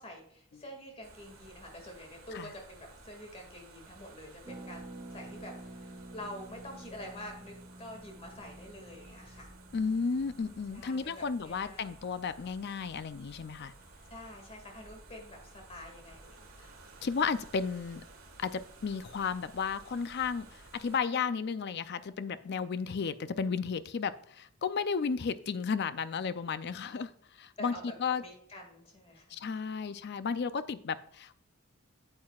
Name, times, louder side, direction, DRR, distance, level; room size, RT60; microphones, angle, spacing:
voice 1, 0.0-4.8 5.1-9.5 10.7-12.1 14.1-16.5 26.6-27.0 27.6-29.4, left 1 dB, 30° left, 2 dB, 2.1 m, -47 dB
sound 1, 1.0-21.0, right 2 dB, 75° right, 1.7 m, -55 dB
Harp, 4.4-14.1 14.3-14.4 14.6-14.9, right 1 dB, 25° right, 0.6 m, -51 dB
voice 2, 9.7-13.7 17.0-18.0 18.4-27.1 27.4-27.7 28.0-28.2 29.3-31.4, left 5 dB, 50° left, 13 dB, 0.4 m, -33 dB
8.7 x 7.6 x 2.4 m, 0.66 s
head